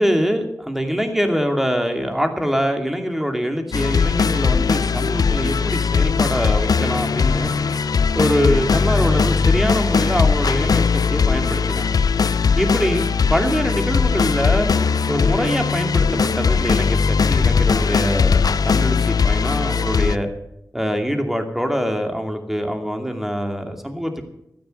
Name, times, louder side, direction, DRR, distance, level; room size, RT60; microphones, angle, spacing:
voice 1, 0.0-7.5 8.2-12.0 12.5-13.0 13.3-14.7 15.1-20.3 20.7-24.2, equal, 5° right, 4 dB, 2.6 m, -23 dB
sound 1, 3.7-20.2, left 5 dB, 75° left, 0.5 m, -19 dB
12.5 x 9.8 x 8.0 m, 0.82 s
cardioid pair, 45°, 7 cm